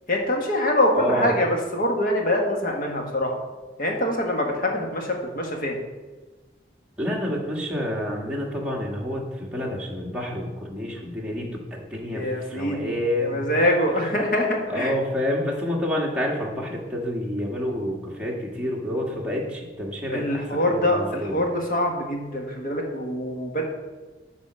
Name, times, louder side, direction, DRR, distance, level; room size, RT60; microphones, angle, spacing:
voice 1, 0.1-3.3 3.8-5.8 12.1-14.9 20.1-23.6, left 1 dB, 50° left, 1 dB, 1.4 m, -24 dB
voice 2, 0.9-1.3 7.0-11.6 11.9-13.5 14.7-21.4, left 1 dB, 5° right, -3 dB, 1.4 m, -28 dB
8.9 x 4.1 x 6.1 m, 1.3 s
head